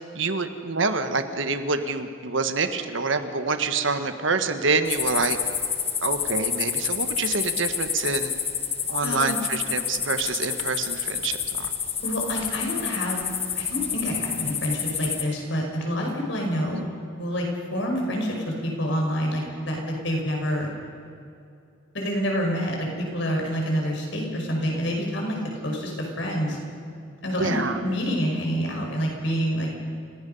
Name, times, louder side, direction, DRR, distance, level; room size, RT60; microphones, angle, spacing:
voice 1, 0.1-5.4 6.0-8.3 8.9-11.7 16.7-16.8 27.4-27.8, right 4 dB, 70° right, 8 dB, 1.4 m, -26 dB
sound 1, 4.9-15.2, left 8 dB, 30° left, 1.1 m, -29 dB
voice 2, 9.0-9.4 12.0-16.8 17.2-20.7 21.9-26.6 27.2-29.7, equal, 65° left, 0 dB, 5.3 m, -27 dB
29.5 x 17.0 x 5.5 m, 2.6 s
head